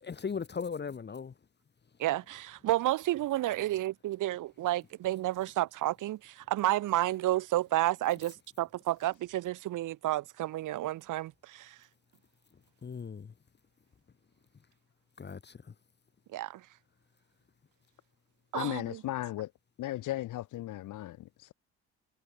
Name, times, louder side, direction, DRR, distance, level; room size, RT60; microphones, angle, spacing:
voice 1, 0.0-1.3 12.8-13.3 15.2-15.6, left 6 dB, 35° left, 1.8 m, -38 dB
voice 2, 2.0-11.8 16.3-16.6 18.5-19.0, right 15 dB, 85° right, 5.0 m, -31 dB
voice 3, 18.5-19.5 19.8-21.5, left 15 dB, 85° left, 6.3 m, -36 dB
cardioid pair, 90°, 30 cm